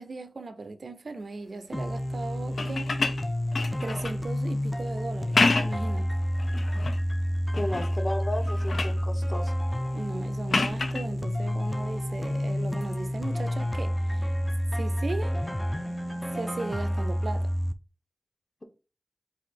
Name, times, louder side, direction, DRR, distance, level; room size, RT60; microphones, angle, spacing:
voice 1, 0.0-3.0 3.8-6.1 9.9-14.3 14.7-15.4 16.3-17.5, right 3 dB, 70° right, 0.5 m, -37 dB
sound 1, 1.7-17.7, equal, 5° left, 0.4 m, -29 dB
sound 2, 2.5-4.3 5.2-5.9 6.4-7.0 7.5-8.0 8.3-9.0 10.5-11.1 12.8-13.0, left 3 dB, 75° left, 0.5 m, -28 dB
voice 2, 7.6-9.5, left 1 dB, 30° left, 1.0 m, -33 dB
4.0 x 2.4 x 4.5 m
wide cardioid pair, 70°, 0 cm